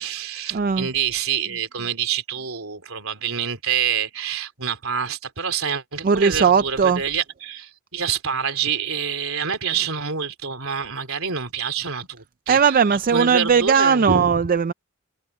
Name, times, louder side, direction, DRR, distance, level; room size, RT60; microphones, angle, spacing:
voice 1, 0.0-12.8 13.1-14.4, right 7 dB, 70° right, 3.8 m, -27 dB
voice 2, 0.5-0.9 6.0-7.0 12.5-14.7, right 6 dB, 40° right, 0.4 m, -18 dB
head